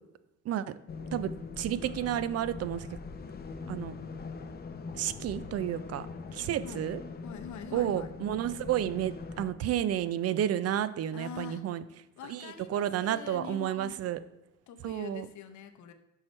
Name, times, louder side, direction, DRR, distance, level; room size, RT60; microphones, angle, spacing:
sound 1, 0.9-9.5, left 4 dB, 30° left, 0.6 m, -42 dB
voice 1, 1.1-2.9 3.7-3.9 4.9-6.1 6.3-7.0 7.7-11.8 12.3-14.2 14.8-15.3, right 11 dB, 55° right, 15 dB, 0.4 m, -31 dB
voice 2, 7.2-8.1 11.1-11.6 12.2-14.0 14.7-15.9, left 8 dB, 70° left, 8 dB, 0.7 m, -44 dB
6.3 x 4.6 x 4.3 m, 0.92 s
cardioid pair, 90°, 30 cm